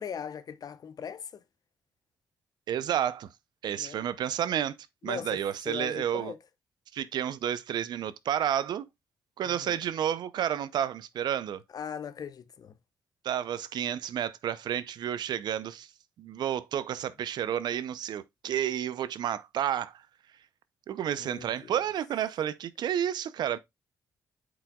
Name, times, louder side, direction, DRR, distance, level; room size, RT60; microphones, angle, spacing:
voice 1, 0.0-1.4 3.7-4.1 5.0-6.4 9.4-9.8 11.7-12.8 21.2-21.7, left 7 dB, 60° left, 0.7 m, -39 dB
voice 2, 2.7-3.3 3.6-4.8 5.0-6.3 6.9-8.9 9.4-11.6 13.2-15.9 16.2-20.0 20.9-23.6, right 10 dB, 75° right, 0.5 m, -31 dB
8.7 x 4.9 x 2.3 m
supercardioid pair, 60°, 8 cm